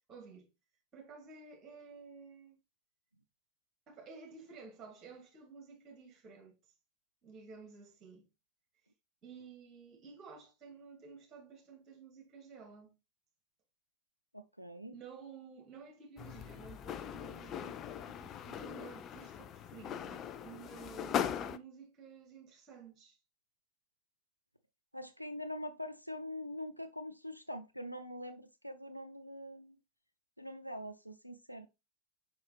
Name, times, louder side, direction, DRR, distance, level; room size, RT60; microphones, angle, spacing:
voice 1, 0.1-0.5 0.9-2.6 3.9-6.6 7.2-8.3 9.2-13.0 14.9-23.2, right 5 dB, 25° right, 3.1 m, -53 dB
voice 2, 14.3-15.0 24.9-29.8 30.4-31.7, left 1 dB, 90° right, 0.4 m, -44 dB
sound 1, 16.2-21.6, left 9 dB, 30° left, 0.5 m, -40 dB
5.7 x 5.5 x 3.2 m
figure-of-eight pair, 90°, 0 cm